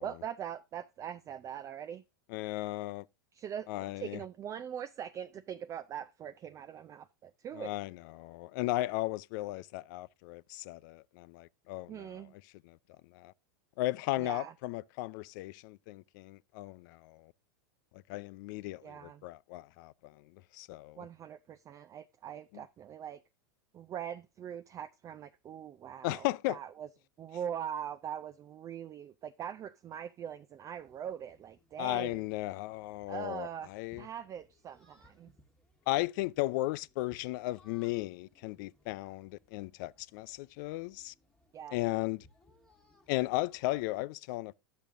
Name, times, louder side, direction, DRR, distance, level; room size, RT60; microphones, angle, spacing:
voice 1, 0.0-2.0 3.3-3.7 4.0-7.7 11.9-12.3 14.2-14.5 18.8-19.2 21.0-23.2 23.7-26.9 27.2-32.2 33.1-33.7 34.0-35.3 41.5-41.8, right 9 dB, 25° right, 0.4 m, -42 dB
voice 2, 2.3-3.1 3.7-4.2 7.5-12.2 12.7-12.8 13.0-13.3 13.8-17.3 17.9-21.0 22.5-22.6 26.0-26.6 31.8-34.1 35.9-41.1 41.7-42.3 43.1-44.5, left 18 dB, 60° left, 0.4 m, -36 dB
sound 1, 30.7-43.9, left 2 dB, 5° left, 1.4 m, -66 dB
10.5 x 6.8 x 3.6 m
supercardioid pair, 125°, 12 cm